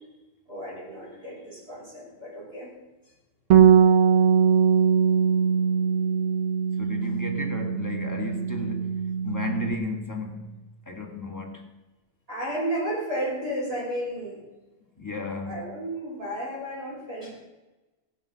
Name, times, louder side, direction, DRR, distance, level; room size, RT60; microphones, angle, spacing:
voice 1, 0.5-2.7 7.0-7.1 12.3-14.4 15.4-17.3, right 1 dB, 45° right, 5.8 m, -33 dB
Bass guitar, 3.5-9.8, right 7 dB, 65° right, 1.0 m, -21 dB
voice 2, 6.8-11.7 15.0-15.8, left 2 dB, 15° left, 2.1 m, -34 dB
16.5 x 9.6 x 5.9 m
omnidirectional pair, 1.4 m